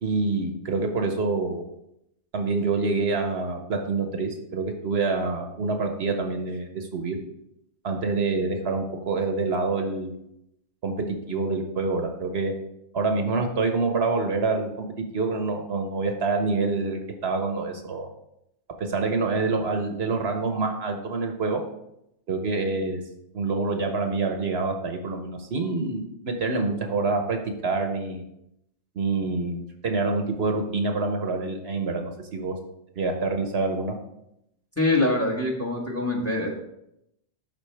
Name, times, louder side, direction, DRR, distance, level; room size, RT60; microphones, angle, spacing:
voice 1, 0.0-1.6 2.3-7.2 7.8-10.2 10.8-12.5 12.9-18.1 18.8-21.6 22.3-23.0 23.3-28.2 28.9-29.6 29.8-32.5 33.0-33.9, right 3 dB, 65° right, 4 dB, 1.0 m, -26 dB
voice 2, 34.8-36.5, left 2 dB, 15° left, 0 dB, 1.2 m, -24 dB
11.5 x 4.0 x 3.3 m, 0.81 s
omnidirectional pair, 1.2 m